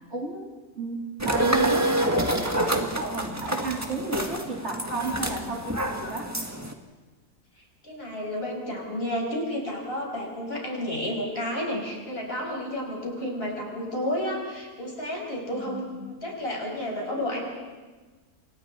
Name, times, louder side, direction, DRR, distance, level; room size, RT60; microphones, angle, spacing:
voice 1, 0.0-6.3 15.6-16.1, right 3 dB, 45° right, -1 dB, 3.2 m, -33 dB
sound 1, 1.2-6.7, right 1 dB, 10° right, 1.6 m, -27 dB
voice 2, 7.6-17.5, left 1 dB, 35° left, -1 dB, 6.5 m, -31 dB
28.5 x 27.0 x 4.5 m, 1.3 s
omnidirectional pair, 1.7 m